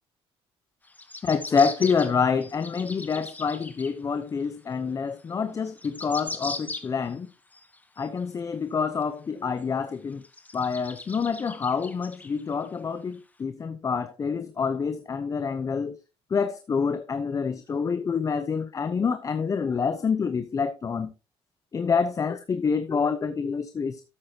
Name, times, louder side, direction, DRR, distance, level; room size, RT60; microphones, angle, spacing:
sound 1, 0.8-4.0 4.4-4.5 5.3-5.4 5.6-7.1 7.5-8.4 9.0-9.1 9.6-9.7 10.2-12.7 13.1-13.2, left 3 dB, 15° left, 1.4 m, -39 dB
voice 1, 1.2-7.3 8.0-10.2 10.5-16.0 16.3-21.1 21.7-24.1, left 5 dB, 30° left, 0.8 m, -27 dB
13.0 x 8.6 x 2.9 m
cardioid pair, 110°, 11 cm